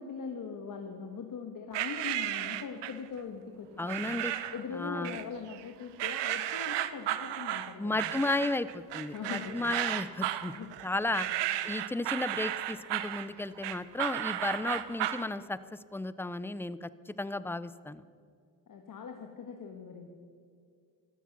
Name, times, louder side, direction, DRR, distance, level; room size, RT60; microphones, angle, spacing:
voice 1, 0.0-8.4 9.1-9.8 10.5-10.7 11.3-11.6 18.7-20.1, left 6 dB, 50° left, 4 dB, 1.5 m, -42 dB
sound 1, 1.7-3.1 3.9-4.6 5.0-5.6 6.0-15.3, right 13 dB, 80° right, 0.9 m, -34 dB
voice 2, 3.8-4.3 4.7-5.2 7.8-10.5 10.8-11.3 11.6-15.6 15.9-18.0, left 2 dB, 5° left, 15 dB, 0.5 m, -34 dB
14.0 x 13.0 x 6.1 m, 2.3 s
cardioid pair, 85°, 42 cm